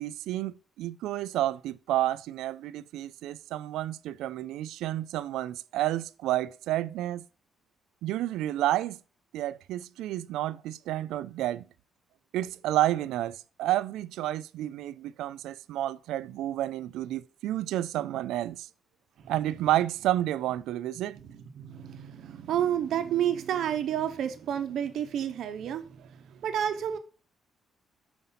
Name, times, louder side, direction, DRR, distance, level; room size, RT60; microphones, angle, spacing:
voice 1, 0.0-7.2 8.0-9.0 9.3-11.6 12.3-18.7 19.3-21.2, right 14 dB, 90° right, 0.4 m, -30 dB
voice 2, 21.2-27.0, right 9 dB, 70° right, 0.9 m, -30 dB
5.6 x 5.1 x 5.7 m
cardioid pair, 90°, 0 cm